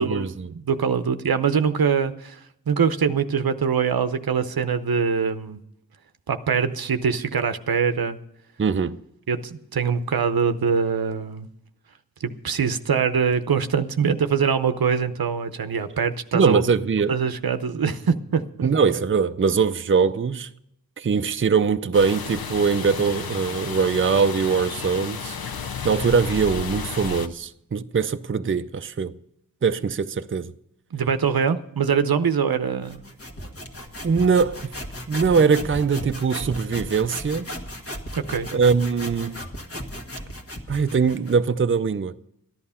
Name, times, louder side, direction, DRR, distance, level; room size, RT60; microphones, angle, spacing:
voice 1, 0.0-0.5 8.6-9.0 16.3-17.2 18.6-20.5 21.0-25.4 25.8-29.1 29.6-30.5 34.0-34.7 35.1-37.5 38.5-39.4 40.7-42.1, right 5 dB, 35° right, 0.5 m, -22 dB
voice 2, 0.5-2.4 2.7-5.6 6.3-8.2 9.3-11.5 12.2-16.6 17.1-18.7 30.9-33.0 38.1-38.5, right 6 dB, 85° right, 0.8 m, -23 dB
sound 1, 21.9-27.3, left 6 dB, 85° left, 0.7 m, -32 dB
sound 2, 32.8-41.4, equal, 40° left, 1.5 m, -36 dB
14.0 x 11.0 x 5.6 m
wide cardioid pair, 80°, 35 cm